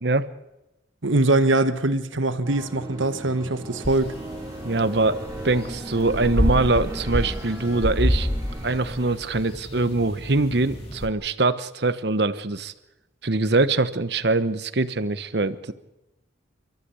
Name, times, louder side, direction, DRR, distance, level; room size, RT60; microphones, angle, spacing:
voice 1, 1.0-4.1, right 2 dB, 90° right, 1.5 m, -22 dB
sound 1, 2.4-9.1, right 1 dB, 20° right, 3.1 m, -38 dB
sound 2, 3.8-11.1, equal, 30° left, 3.5 m, -29 dB
voice 2, 4.6-5.2 5.4-8.3 8.6-12.7 13.2-15.7, right 3 dB, 60° right, 1.1 m, -23 dB
29.0 x 13.5 x 8.3 m
head